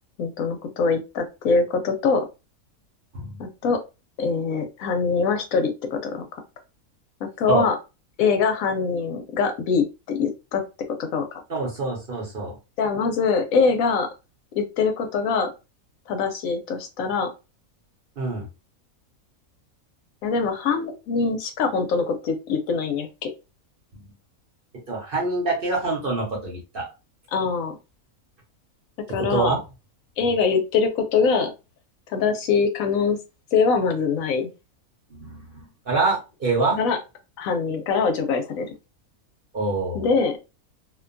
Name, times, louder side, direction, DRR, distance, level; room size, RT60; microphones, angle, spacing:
voice 1, 0.2-2.3 3.4-3.8 4.2-6.2 7.2-7.8 8.2-10.6 11.0-11.4 12.8-14.1 14.5-15.5 16.1-17.3 20.2-23.3 27.3-27.8 29.1-29.5 30.2-31.5 32.1-33.2 33.5-34.5 36.8-37.0 37.4-38.7 39.9-40.4, left 5 dB, 75° left, 5 dB, 1.0 m, -23 dB
voice 2, 11.5-12.6 18.2-18.4 24.9-26.9 29.1-29.6 35.1-36.8 39.5-40.0, right 3 dB, 50° right, -1 dB, 0.8 m, -25 dB
2.6 x 2.2 x 2.5 m, 0.27 s
omnidirectional pair, 1.5 m